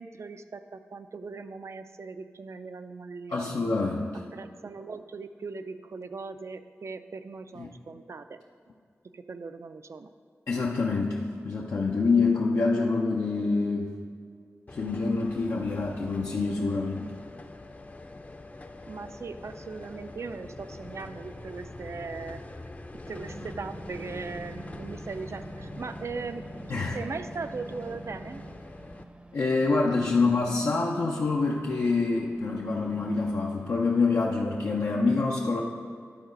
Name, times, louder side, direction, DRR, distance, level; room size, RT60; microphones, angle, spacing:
voice 1, 0.0-3.5 4.3-8.4 9.1-10.1 18.9-22.4 23.1-26.5 26.9-28.4, right 4 dB, 65° right, 10 dB, 0.4 m, -39 dB
voice 2, 3.3-4.2 7.6-7.7 10.5-11.2 11.4-13.9 14.7-17.1 26.7-27.0 29.3-35.6, left 3 dB, 85° left, -3 dB, 0.6 m, -26 dB
sound 1, 14.7-29.0, left 2 dB, 30° left, 0.5 m, -44 dB
sound 2, 23.1-34.3, right 1 dB, 25° right, 0.6 m, -46 dB
10.5 x 3.9 x 5.1 m, 2.1 s
cardioid pair, 50°, 5 cm